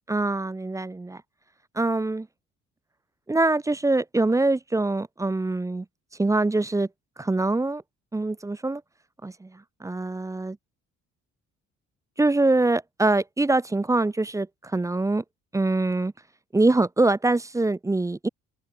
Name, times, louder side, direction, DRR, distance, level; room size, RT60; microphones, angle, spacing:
voice 1, 0.1-1.2 1.8-2.3 3.3-5.9 6.2-6.9 7.2-7.8 8.1-8.8 9.2-10.6 12.2-15.2 15.5-16.1 16.5-18.3, right 2 dB, 10° right, 0.5 m, -24 dB
open air
cardioid pair, 90°, 30 cm